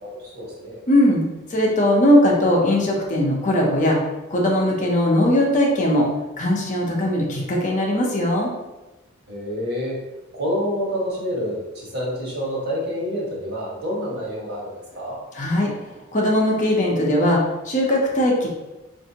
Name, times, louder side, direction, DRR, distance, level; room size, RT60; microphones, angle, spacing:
voice 1, 0.0-0.8 9.3-9.9 10.4-15.2, equal, 50° right, -4 dB, 1.4 m, -28 dB
voice 2, 0.9-4.0 4.3-6.1 6.4-8.5 15.3-15.7 16.1-18.5, left 1 dB, 35° left, -2 dB, 0.7 m, -19 dB
5.4 x 2.6 x 2.8 m, 1.1 s
head